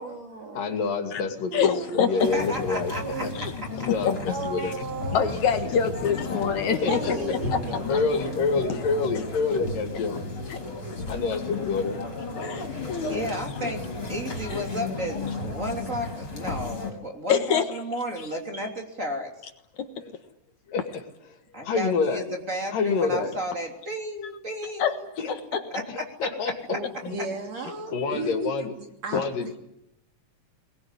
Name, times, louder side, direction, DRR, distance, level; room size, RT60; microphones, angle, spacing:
voice 1, 0.0-0.7 1.5-1.9 2.3-2.5 2.9-3.4 4.3-5.3 6.9-8.0 8.6-8.7 26.7-28.7 29.0-29.5, right 3 dB, 55° right, 3 dB, 3.9 m, -35 dB
voice 2, 0.5-2.9 3.2-3.3 3.8-4.8 6.8-7.1 7.9-10.2 11.1-12.5 20.0-20.1 20.7-21.0 21.6-22.3 22.7-23.3 25.2-25.3 25.9-27.2 27.9-28.7 29.1-29.6, left 4 dB, 85° left, 5 dB, 4.4 m, -27 dB
voice 3, 1.5-2.3 3.4-3.5 4.0-4.7 5.1-7.2 10.5-10.6 12.4-13.3 17.3-17.7 19.8-19.9 24.8-25.0 25.5-25.6 27.9-28.0 29.1-29.2, left 7 dB, 65° left, 7 dB, 2.7 m, -25 dB
sound 1, 2.2-16.9, left 3 dB, 40° left, 5.4 m, -34 dB
voice 4, 2.3-3.2 5.9-7.8 13.1-19.3 21.5-25.1 25.7-26.1, equal, 25° right, 2 dB, 3.3 m, -33 dB
23.0 x 20.5 x 9.9 m, 0.82 s
omnidirectional pair, 3.8 m